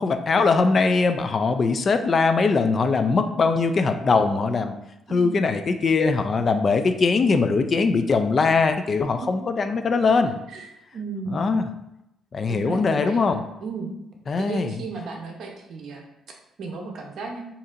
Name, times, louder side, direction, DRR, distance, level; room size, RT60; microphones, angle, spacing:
voice 1, 0.0-4.7 5.1-10.4 11.3-11.6 12.3-13.4 14.3-14.7, left 4 dB, 45° left, 8 dB, 0.3 m, -21 dB
voice 2, 10.5-11.5 12.5-13.9 14.4-16.0 16.6-17.4, right 4 dB, 65° right, 1 dB, 0.8 m, -34 dB
4.0 x 2.8 x 2.5 m, 0.85 s
cardioid pair, 90°, 0 cm